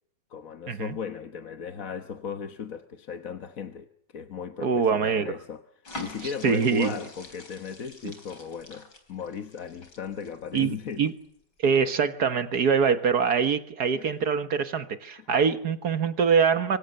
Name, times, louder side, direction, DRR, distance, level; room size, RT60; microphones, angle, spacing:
voice 1, 0.3-3.9 4.1-5.6 6.0-11.1 13.9-14.1 15.2-15.3, left 7 dB, 55° left, 1.6 m, -36 dB
voice 2, 4.6-5.4 6.4-6.9 10.5-11.1 11.6-16.8, right 6 dB, 65° right, 1.8 m, -24 dB
sound 1, 5.9-11.2 11.6-11.8, left 2 dB, 90° left, 4.8 m, -45 dB
26.0 x 25.0 x 6.7 m
omnidirectional pair, 1.8 m